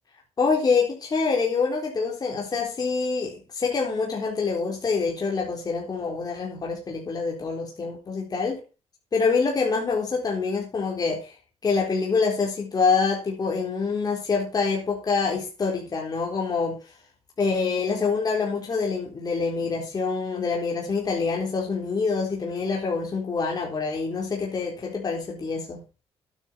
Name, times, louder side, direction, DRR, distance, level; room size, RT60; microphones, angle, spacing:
voice 1, 0.4-8.6 9.1-11.3 11.6-16.9 17.4-25.8, left 4 dB, 35° left, -1 dB, 4.0 m, -26 dB
12.0 x 9.3 x 4.5 m, 0.32 s
cardioid pair, 115°, 11 cm